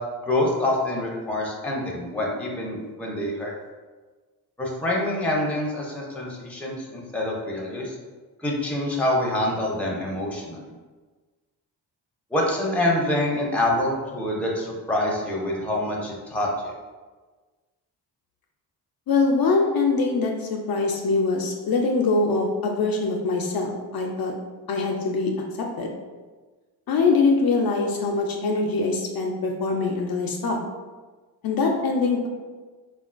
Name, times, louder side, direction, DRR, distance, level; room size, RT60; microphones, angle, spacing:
voice 1, 0.2-3.5 4.6-8.0 8.4-10.6 12.3-16.7, left 1 dB, 5° left, -3 dB, 0.6 m, -26 dB
voice 2, 19.1-24.3 24.7-25.3 25.8-25.9 26.9-30.6 31.4-32.3, left 3 dB, 55° left, 0 dB, 0.5 m, -23 dB
3.6 x 2.2 x 2.4 m, 1.3 s
cardioid pair, 80°, 44 cm